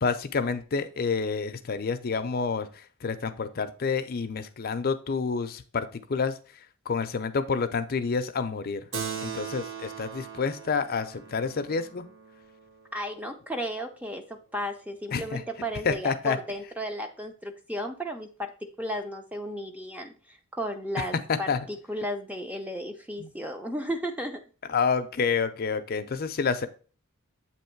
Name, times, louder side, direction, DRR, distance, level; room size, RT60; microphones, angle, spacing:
voice 1, 0.0-2.7 3.0-6.3 6.9-8.8 9.2-12.0 15.1-15.4 15.8-16.4 21.0-21.1 21.3-21.6 23.2-23.3 24.7-26.7, left 5 dB, 45° left, 9 dB, 0.5 m, -28 dB
Keyboard (musical), 8.9-13.8, right 7 dB, 60° right, 0.7 m, -40 dB
voice 2, 12.9-18.5 18.8-24.4, equal, 5° right, 5 dB, 0.5 m, -34 dB
7.8 x 3.0 x 4.4 m, 0.37 s
head